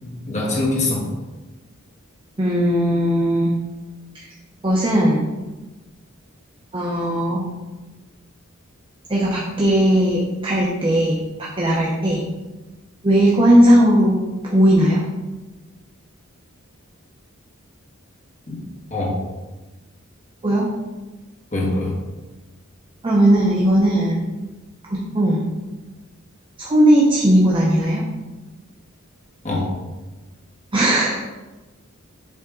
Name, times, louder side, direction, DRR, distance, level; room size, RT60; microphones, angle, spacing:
voice 1, 0.0-1.1 18.5-18.6 18.9-19.2 21.5-21.9 29.4-29.7, left 2 dB, 35° left, -4 dB, 1.6 m, -23 dB
voice 2, 2.4-3.5 4.1-4.3 4.6-5.2 6.7-7.4 9.1-12.2 13.0-15.0 20.4-20.7 23.0-24.2 24.9-25.5 26.6-28.1 30.7-31.2, right 1 dB, 25° right, -4 dB, 0.8 m, -17 dB
7.4 x 3.5 x 3.8 m, 1.2 s
head